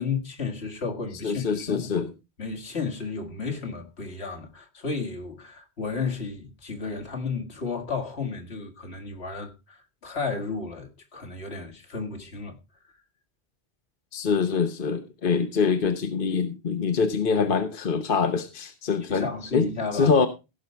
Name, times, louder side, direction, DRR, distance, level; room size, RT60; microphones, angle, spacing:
voice 1, 0.0-2.0 2.4-9.8 10.0-12.6 19.1-20.2, left 4 dB, 80° left, 2.3 m, -33 dB
voice 2, 1.2-2.1 14.1-19.7 19.9-20.3, left 5 dB, 55° left, 1.2 m, -24 dB
16.5 x 5.5 x 4.5 m
omnidirectional pair, 1.1 m